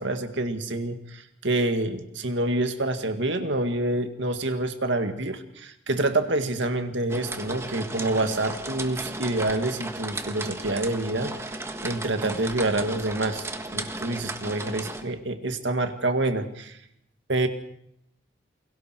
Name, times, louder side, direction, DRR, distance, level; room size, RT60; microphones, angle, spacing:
voice 1, 0.0-16.8 17.3-17.5, right 2 dB, 75° right, 7 dB, 2.1 m, -27 dB
sound 1, 7.1-15.0, right 2 dB, 15° right, 1.4 m, -35 dB
29.0 x 22.5 x 4.6 m, 0.73 s
head